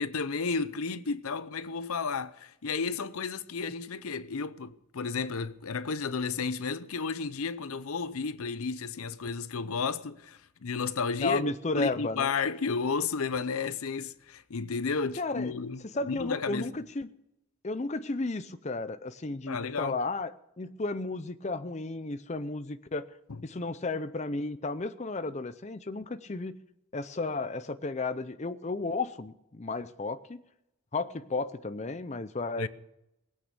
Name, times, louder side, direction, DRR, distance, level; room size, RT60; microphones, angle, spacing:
voice 1, 0.0-15.8 16.1-16.7 19.5-20.0 32.6-32.7, left 4 dB, 75° left, 0.7 m, -32 dB
voice 2, 11.2-12.3 15.2-15.5 15.9-17.1 17.6-23.1 23.4-26.6 26.9-30.4 30.9-32.7, left 3 dB, 30° left, 0.5 m, -33 dB
20.0 x 8.7 x 6.8 m
head